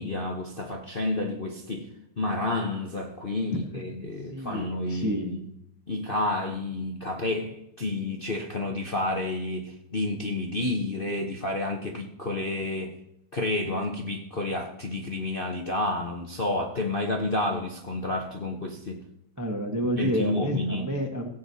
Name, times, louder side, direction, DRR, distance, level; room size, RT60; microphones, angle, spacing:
voice 1, 0.0-1.9 2.2-5.4 5.9-13.0 13.3-19.0 20.0-20.9, left 2 dB, 40° left, 0.9 m, -30 dB
voice 2, 3.5-5.4 19.4-21.3, equal, 15° right, 0.8 m, -30 dB
17.0 x 8.1 x 4.1 m
omnidirectional pair, 2.4 m